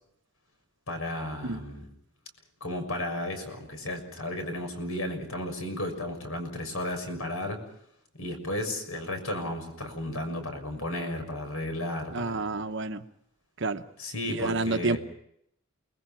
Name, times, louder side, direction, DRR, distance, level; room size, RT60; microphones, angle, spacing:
voice 1, 0.9-1.8 2.6-7.6 8.2-12.5 14.0-15.0, left 1 dB, 75° left, 6 dB, 6.5 m, -34 dB
voice 2, 12.1-13.0 13.6-13.8 14.3-15.0, right 3 dB, 55° right, 9 dB, 1.0 m, -29 dB
29.0 x 21.0 x 6.0 m, 0.73 s
head